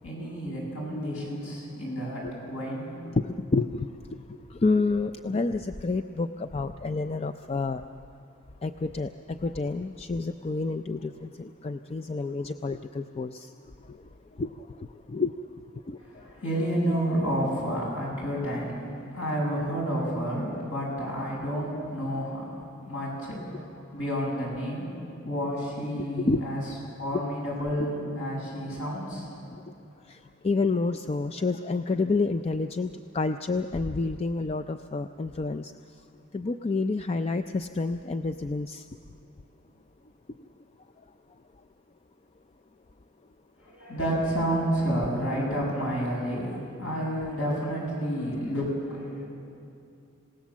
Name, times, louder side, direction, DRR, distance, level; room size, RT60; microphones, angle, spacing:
voice 1, 0.0-3.0 16.0-26.6 27.0-29.5 43.6-49.3, equal, 75° left, -3 dB, 7.9 m, -30 dB
voice 2, 3.5-3.9 4.6-7.8 8.6-9.1 9.4-13.5 14.4-14.5 15.1-15.3 15.9-16.0 26.2-26.4 30.4-32.9 33.1-35.7 36.3-38.8, left 3 dB, 30° left, 8 dB, 0.4 m, -28 dB
27.0 x 17.5 x 7.3 m, 2.6 s
head